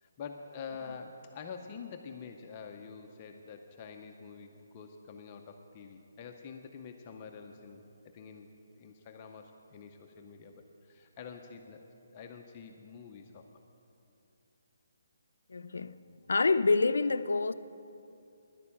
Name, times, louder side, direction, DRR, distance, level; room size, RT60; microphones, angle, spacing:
voice 1, 0.0-7.8 8.1-8.5 8.8-13.5, left 6 dB, 25° left, 0.5 m, -47 dB
voice 2, 15.5-16.0 16.3-17.5, left 3 dB, 85° left, 0.4 m, -27 dB
11.0 x 6.7 x 8.5 m
hypercardioid pair, 170°, 0 cm